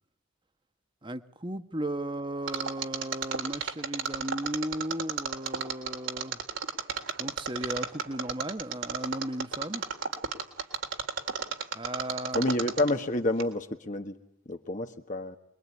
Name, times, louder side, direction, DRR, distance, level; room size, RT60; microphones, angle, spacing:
voice 1, 1.0-6.4 7.2-9.8 11.7-12.5, right 1 dB, 25° right, 1.3 m, -35 dB
Mechanisms, 2.5-13.1 13.4-13.5, right 6 dB, 75° right, 3.7 m, -32 dB
voice 2, 12.3-14.1 14.5-15.4, left 1 dB, 40° left, 1.4 m, -29 dB
25.5 x 23.0 x 9.7 m
head